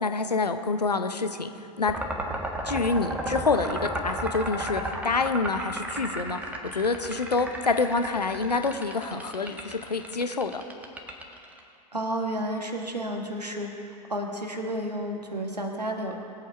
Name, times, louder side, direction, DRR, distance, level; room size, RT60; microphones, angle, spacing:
voice 1, 0.0-1.5 1.8-1.9 2.6-6.4 6.7-10.5, left 4 dB, 85° left, 8 dB, 0.9 m, -27 dB
sound 1, 1.9-11.6, right 1 dB, 10° right, 1.5 m, -34 dB
voice 2, 11.9-13.7 14.1-16.2, right 1 dB, 85° right, 3 dB, 1.6 m, -31 dB
21.0 x 8.4 x 4.5 m, 2.6 s
figure-of-eight pair, 90°, 20 cm